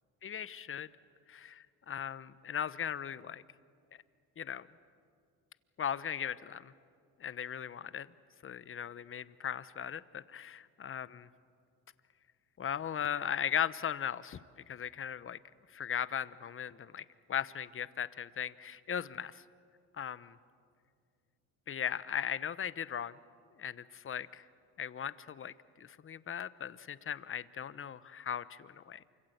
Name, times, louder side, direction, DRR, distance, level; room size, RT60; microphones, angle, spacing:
voice 1, 0.2-0.9 1.3-3.4 4.4-4.6 5.8-6.7 7.2-8.1 8.4-11.3 12.6-14.4 14.7-15.4 15.7-19.3 20.0-20.4 21.7-23.2 23.6-24.4 24.8-29.0, left 8 dB, 35° left, 16 dB, 1.0 m, -38 dB
28.0 x 25.5 x 8.1 m, 2.3 s
supercardioid pair, 90°, 35 cm